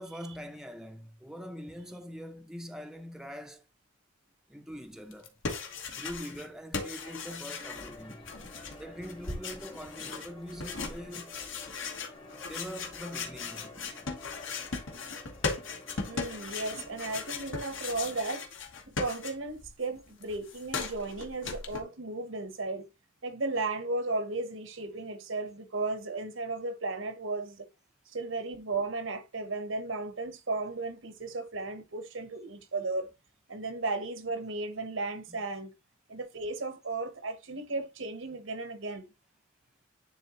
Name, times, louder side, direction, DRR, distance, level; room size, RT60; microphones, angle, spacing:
voice 1, 0.0-3.6 4.5-5.3 5.9-8.3 8.8-11.4 12.4-13.7 18.8-19.0 35.3-35.4, equal, 5° right, 0.5 m, -43 dB
sound 1, 5.1-6.5 6.7-19.7 20.0-21.8, left 4 dB, 70° left, 1.3 m, -38 dB
sound 2, 7.6-18.5, left 2 dB, 25° left, 1.0 m, -51 dB
voice 2, 16.1-18.5 19.0-22.9 23.2-27.7 28.1-33.1 33.5-35.7 36.1-39.1, right 3 dB, 80° right, 1.1 m, -35 dB
10.0 x 3.7 x 3.0 m
head